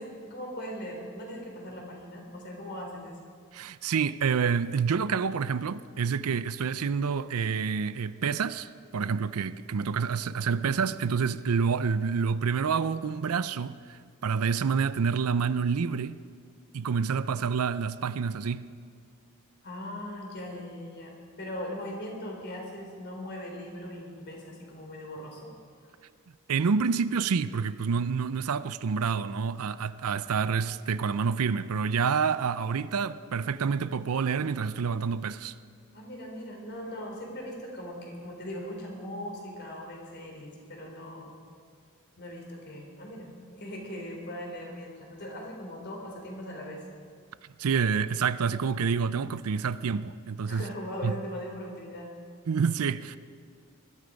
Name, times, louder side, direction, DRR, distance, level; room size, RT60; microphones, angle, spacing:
voice 1, 0.0-3.2 19.6-25.5 25.8-25.9 30.4-30.5 35.9-41.3 42.2-46.8 50.5-52.1, equal, 50° left, 3.8 m, -40 dB
voice 2, 3.5-16.2 16.7-18.7 26.5-35.5 47.6-50.6 51.0-51.1 52.5-53.2, right 6 dB, 75° right, 0.5 m, -28 dB
20.5 x 13.0 x 5.2 m
head